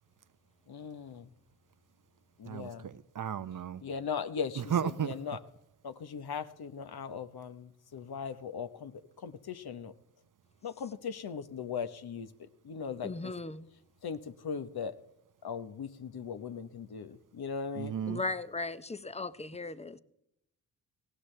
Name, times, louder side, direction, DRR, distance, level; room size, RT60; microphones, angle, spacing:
voice 1, 0.7-1.3 2.4-2.9 3.8-5.4 5.8-8.9 9.2-9.9 10.6-12.3 12.6-13.3 14.0-14.9 15.4-18.0, left 6 dB, 50° left, 1.2 m, -39 dB
voice 2, 2.4-3.8 4.6-5.2 17.8-18.2, right 8 dB, 40° right, 0.8 m, -34 dB
voice 3, 13.0-13.7 18.1-20.0, left 3 dB, 15° left, 0.8 m, -37 dB
19.0 x 16.5 x 3.4 m
hypercardioid pair, 45°, 47 cm